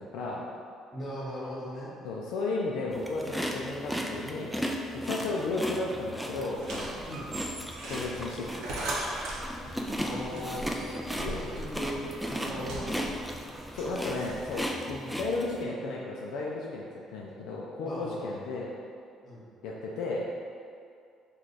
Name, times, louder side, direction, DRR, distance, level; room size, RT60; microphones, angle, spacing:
voice 1, 0.1-0.4 2.0-4.5 4.9-7.1 7.9-8.7 11.3-11.4 13.7-18.7 19.6-20.3, left 2 dB, 85° left, -3 dB, 0.3 m, -34 dB
voice 2, 0.9-1.9 7.0-7.3 10.0-10.7 11.2-12.0 12.3-13.1 15.0-15.2 17.8-18.3 19.2-19.4, left 1 dB, 35° left, -6 dB, 1.0 m, -38 dB
sound 1, 2.9-15.6, equal, ahead, 0.3 m, -36 dB
sound 2, 6.5-14.7, right 1 dB, 75° right, 0.6 m, -39 dB
3.2 x 2.3 x 3.9 m, 2.3 s
cardioid pair, 95°, 0 cm